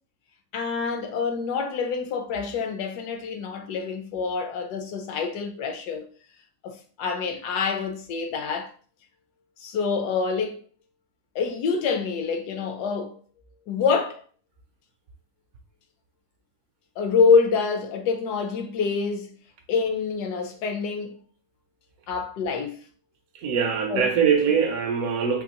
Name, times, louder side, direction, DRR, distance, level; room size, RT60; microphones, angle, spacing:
voice 1, 0.5-6.0 6.6-8.7 9.6-10.6 11.3-13.2 13.7-14.2 17.0-19.4 19.7-21.2 22.1-22.8 23.9-24.1, left 5 dB, 75° left, 1.1 m, -26 dB
voice 2, 23.4-25.4, right 7 dB, 70° right, 0.9 m, -22 dB
3.6 x 2.7 x 2.8 m
omnidirectional pair, 1.8 m